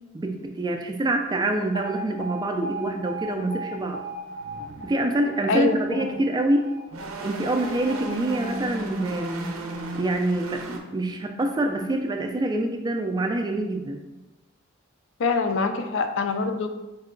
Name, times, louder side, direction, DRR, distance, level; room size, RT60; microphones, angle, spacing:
voice 1, 0.1-4.0 4.8-6.7 7.1-9.5 9.9-14.0, right 1 dB, 20° right, 4 dB, 0.3 m, -26 dB
Alarm, 1.7-9.8, right 1 dB, 90° left, 1.2 m, -38 dB
sound 1, 3.7-3.8 4.3-6.4 6.8-10.8, right 2 dB, 85° right, 0.5 m, -36 dB
voice 2, 5.5-6.2 15.2-16.7, left 4 dB, 65° left, 7 dB, 0.4 m, -24 dB
4.7 x 2.2 x 3.7 m, 1.0 s
head